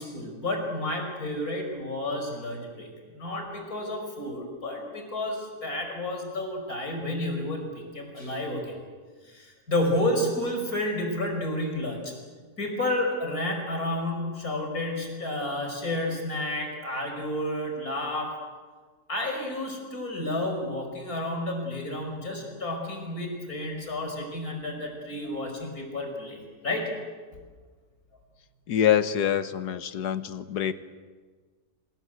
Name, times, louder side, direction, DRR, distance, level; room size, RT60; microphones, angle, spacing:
voice 1, 0.0-8.7 9.2-12.1 12.6-18.3 19.1-26.9, left 1 dB, 65° left, 3 dB, 5.7 m, -31 dB
voice 2, 28.7-30.7, left 9 dB, 85° left, 12 dB, 1.6 m, -25 dB
26.0 x 20.5 x 8.0 m, 1.5 s
omnidirectional pair, 1.7 m